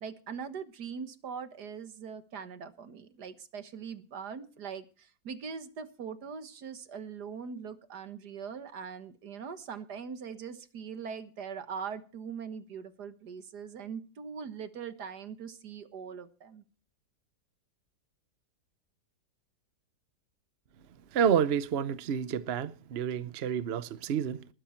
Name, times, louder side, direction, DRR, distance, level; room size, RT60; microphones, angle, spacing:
voice 1, 0.0-16.6, right 6 dB, 80° right, 2.0 m, -41 dB
voice 2, 21.1-24.5, right 8 dB, 50° right, 0.8 m, -29 dB
20.0 x 10.0 x 4.5 m
omnidirectional pair, 1.7 m